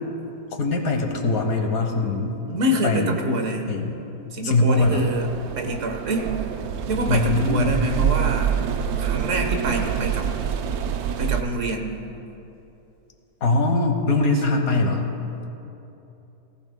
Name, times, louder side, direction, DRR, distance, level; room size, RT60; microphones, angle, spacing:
voice 1, 0.5-2.4 2.8-3.1 3.7-4.0 4.4-5.1 7.1-7.8 13.4-15.1, left 2 dB, 65° left, 4 dB, 1.6 m, -22 dB
voice 2, 2.5-3.7 4.3-5.3 5.6-6.3 6.9-8.6 9.0-10.3 11.2-11.9, right 1 dB, 50° right, 3 dB, 1.4 m, -26 dB
sound 1, 4.7-11.4, right 8 dB, 75° right, 1.0 m, -26 dB
18.0 x 15.5 x 2.2 m, 2.8 s
omnidirectional pair, 1.7 m